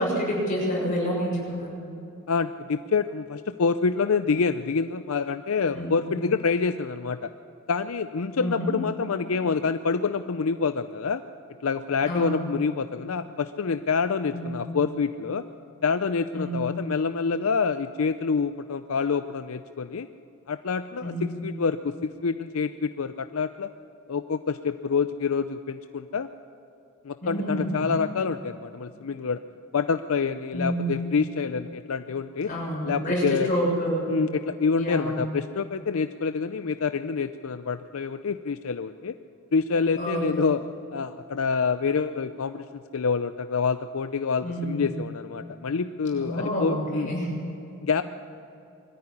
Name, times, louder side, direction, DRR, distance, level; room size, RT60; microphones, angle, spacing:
voice 1, 0.0-1.8 5.7-6.1 8.3-8.7 12.0-12.4 14.3-14.6 16.3-16.7 21.0-21.3 27.2-27.8 30.5-31.0 32.4-34.1 34.7-35.1 39.9-40.4 44.4-44.8 46.1-47.3, equal, 40° left, -3 dB, 6.7 m, -28 dB
voice 2, 2.3-7.3 7.7-11.2 11.6-15.4 15.8-20.1 20.5-23.7 24.1-26.3 27.0-29.4 29.7-32.5 32.8-33.5 34.1-39.2 39.5-40.6 40.9-47.1 47.8-48.0, left 5 dB, 80° left, 10 dB, 0.5 m, -27 dB
22.0 x 14.0 x 9.9 m, 2.8 s
head